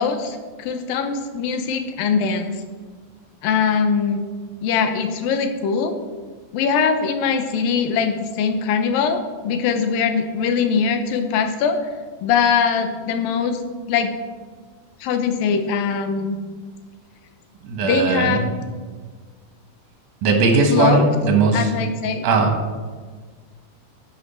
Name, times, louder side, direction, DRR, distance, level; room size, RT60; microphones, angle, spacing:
voice 1, 0.0-2.6 3.4-4.2 4.6-5.9 6.5-11.8 12.2-13.6 13.9-14.2 15.0-16.4 17.8-18.4 20.7-21.1 21.5-22.3, left 6 dB, 90° left, 7 dB, 2.6 m, -21 dB
voice 2, 17.6-18.4 20.2-21.7 22.2-22.5, right 4 dB, 65° right, 3 dB, 2.7 m, -18 dB
11.5 x 7.8 x 4.4 m, 1.5 s
omnidirectional pair, 4.0 m